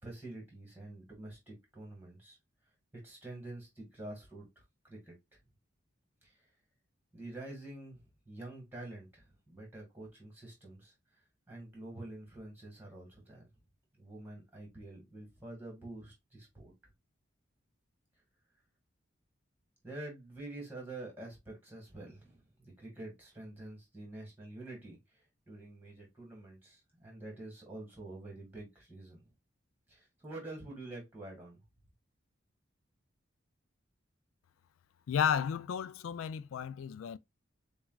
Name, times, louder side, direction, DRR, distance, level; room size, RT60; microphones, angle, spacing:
voice 1, 0.0-2.4 3.0-4.5 4.8-5.4 6.2-6.4 7.1-10.9 11.5-13.5 13.9-16.7 19.8-29.3 29.9-31.6, right 2 dB, 10° right, 1.8 m, -47 dB
voice 2, 35.1-37.2, left 8 dB, 85° left, 0.3 m, -33 dB
7.0 x 2.4 x 2.3 m
head